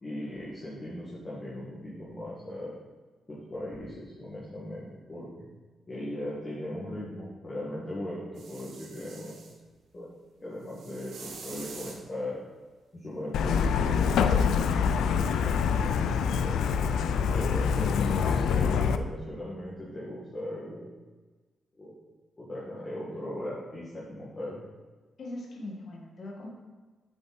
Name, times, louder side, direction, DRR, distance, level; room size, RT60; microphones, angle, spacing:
voice 1, 0.0-2.7 3.3-5.5 5.9-9.3 9.9-10.1 10.4-12.4 12.9-14.9 15.4-16.9 17.3-20.9 21.8-21.9 22.4-24.6, left 1 dB, 25° left, -8 dB, 2.0 m, -38 dB
sound 1, 8.4-9.6 10.7-12.0 14.2-14.3, right 4 dB, 75° right, 1.6 m, -46 dB
Truck, 13.3-19.0, left 6 dB, 85° left, 0.4 m, -25 dB
voice 2, 25.2-26.5, left 2 dB, 45° left, -1 dB, 1.7 m, -40 dB
8.2 x 7.0 x 4.2 m, 1.3 s
cardioid pair, 145°, 0 cm